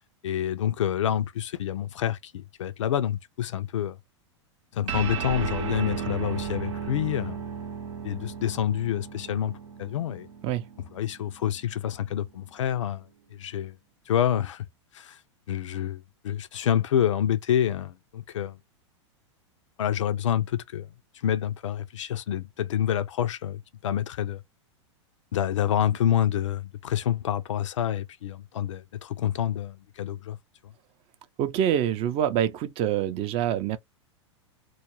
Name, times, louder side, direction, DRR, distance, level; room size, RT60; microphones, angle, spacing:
voice 1, 0.2-4.0 4.7-7.4 8.0-10.3 10.9-13.1 13.3-13.8 14.1-14.7 14.9-15.2 15.5-18.6 19.8-20.9 21.2-24.4 25.3-30.4, left 10 dB, 80° left, 0.4 m, -27 dB
sound 1, 4.9-11.6, right 7 dB, 80° right, 0.7 m, -35 dB
voice 2, 31.4-33.8, right 10 dB, 40° right, 0.4 m, -26 dB
2.3 x 2.1 x 2.9 m
hypercardioid pair, 110°, 16 cm